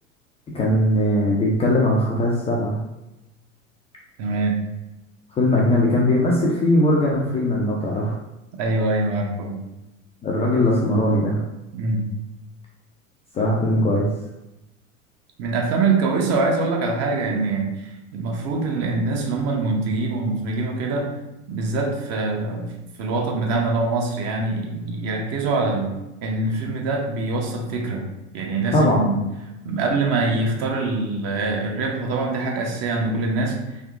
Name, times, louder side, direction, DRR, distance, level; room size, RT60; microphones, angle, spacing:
voice 1, 0.5-2.8 5.3-8.1 10.2-11.4 13.3-14.1 28.7-29.0, left 1 dB, 15° left, -4 dB, 0.4 m, -20 dB
voice 2, 4.2-4.6 8.6-9.6 11.7-12.1 15.4-21.1 21.5-25.9 26.2-28.1 28.3-29.2 29.6-33.6, right 3 dB, 40° right, 0 dB, 0.8 m, -24 dB
3.6 x 2.7 x 2.4 m, 0.97 s
figure-of-eight pair, 85°, 40 cm